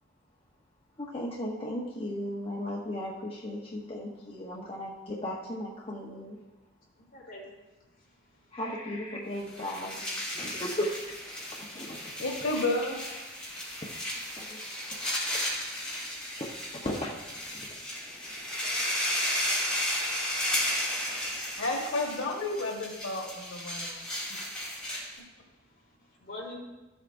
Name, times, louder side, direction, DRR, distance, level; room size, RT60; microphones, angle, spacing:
voice 1, 1.0-6.4 8.5-10.0 10.3-11.0 11.5-12.1 14.4-14.6 15.3-15.4 16.4-16.5 16.8-17.1 17.5-17.6, left 1 dB, 30° left, -4 dB, 0.9 m, -36 dB
voice 2, 7.0-7.5 25.7-26.6, left 1 dB, 50° left, -5 dB, 3.4 m, -46 dB
sound 1, 9.4-25.2, left 1 dB, 5° left, 3.3 m, -34 dB
voice 3, 12.2-13.0 21.6-24.0 24.3-24.4, left 2 dB, 90° left, 0 dB, 1.4 m, -31 dB
13.5 x 8.0 x 2.6 m, 1.1 s
head